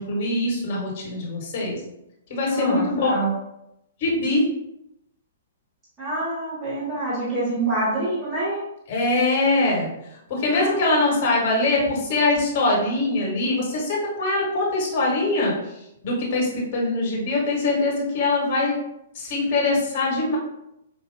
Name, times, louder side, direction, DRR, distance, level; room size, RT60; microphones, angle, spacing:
voice 1, 0.0-1.8 2.3-3.1 4.0-4.4 8.9-9.9 10.3-15.5 16.0-18.7 19.1-20.4, left 2 dB, 50° left, -3 dB, 1.4 m, -23 dB
voice 2, 2.5-3.3 6.0-8.6 10.5-10.9, right 2 dB, 15° right, -9 dB, 1.5 m, -26 dB
5.3 x 2.7 x 2.2 m, 0.83 s
figure-of-eight pair, 115°, 0 cm